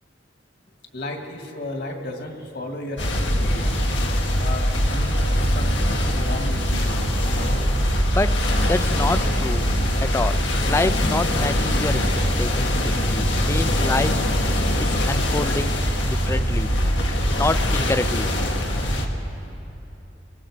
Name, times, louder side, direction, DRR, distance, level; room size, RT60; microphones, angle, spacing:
voice 1, 0.9-3.8 4.4-6.9 13.4-13.6 13.9-14.0 15.0-15.1 16.7-16.8 17.2-17.3, left 1 dB, 60° left, 3 dB, 2.1 m, -34 dB
sound 1, 3.0-19.1, equal, 90° left, 1.9 m, -22 dB
voice 2, 8.1-9.6 10.0-12.1 12.4-14.2 14.8-15.8 16.1-16.7 17.3-18.3, left 2 dB, 15° left, 14 dB, 0.4 m, -27 dB
24.5 x 23.5 x 5.0 m, 2.9 s
head